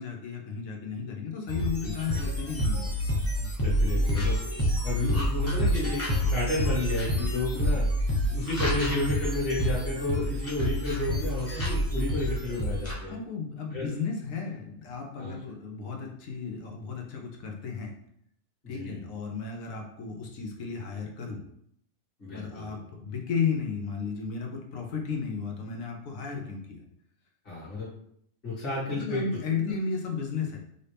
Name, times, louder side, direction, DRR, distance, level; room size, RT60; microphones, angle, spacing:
voice 1, 0.0-2.9 13.1-18.0 18.7-21.4 22.3-26.9 28.9-30.6, left 5 dB, 70° left, 1 dB, 1.2 m, -34 dB
sound 1, 1.5-12.9, equal, 15° left, 0.8 m, -28 dB
voice 2, 3.4-4.4 4.8-7.9 8.3-13.2 13.7-13.9 15.2-15.4 18.6-19.0 22.2-22.7 27.5-27.9 28.4-29.2, left 2 dB, 40° left, -7 dB, 1.9 m, -32 dB
5.5 x 2.7 x 3.4 m, 0.70 s
omnidirectional pair, 1.5 m